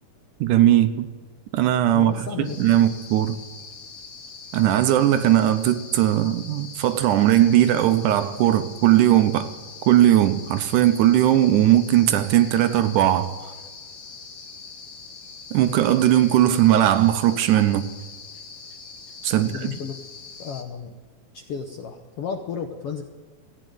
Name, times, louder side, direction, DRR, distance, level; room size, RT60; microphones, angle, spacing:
voice 1, 0.4-1.1 1.5-3.4 4.5-9.5 9.9-13.4 15.5-17.9 19.2-19.7, right 12 dB, 75° right, 2.1 m, -19 dB
voice 2, 1.8-2.9 19.3-20.0 20.4-20.9 21.3-23.0, left 6 dB, 75° left, 1.4 m, -33 dB
sound 1, 2.4-20.6, left 5 dB, 45° left, 1.6 m, -42 dB
15.5 x 9.0 x 9.1 m
omnidirectional pair, 3.8 m